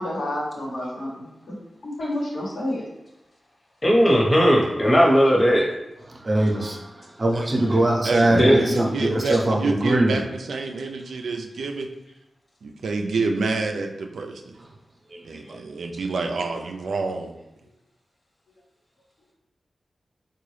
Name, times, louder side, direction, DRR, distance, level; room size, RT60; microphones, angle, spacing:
voice 1, 0.0-1.6 1.8-2.8 8.4-8.7, left 1 dB, 80° left, -5 dB, 1.1 m, -29 dB
voice 2, 3.8-5.7 8.3-8.6, equal, 35° left, -2 dB, 1.0 m, -17 dB
voice 3, 6.1-10.2 15.1-15.2 15.5-15.6, right 1 dB, 45° right, 0 dB, 0.7 m, -22 dB
voice 4, 8.0-11.9 12.6-14.6 15.2-17.3, right 3 dB, 90° right, 4 dB, 0.3 m, -28 dB
3.7 x 2.2 x 3.2 m, 0.91 s
cardioid pair, 55°, 0 cm